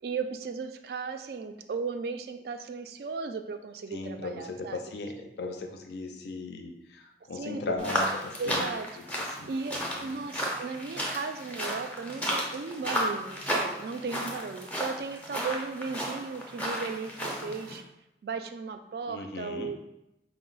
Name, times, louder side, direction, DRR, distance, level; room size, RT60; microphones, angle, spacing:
voice 1, 0.0-4.8 7.3-7.9 8.4-8.9 9.5-17.8 18.2-19.8, right 4 dB, 60° right, 8 dB, 0.3 m, -36 dB
voice 2, 3.9-8.6 9.4-10.2 19.1-19.7, left 3 dB, 70° left, 4 dB, 0.5 m, -37 dB
sound 1, 7.8-17.8, equal, 10° left, 0.5 m, -33 dB
4.5 x 2.0 x 3.9 m, 0.88 s
head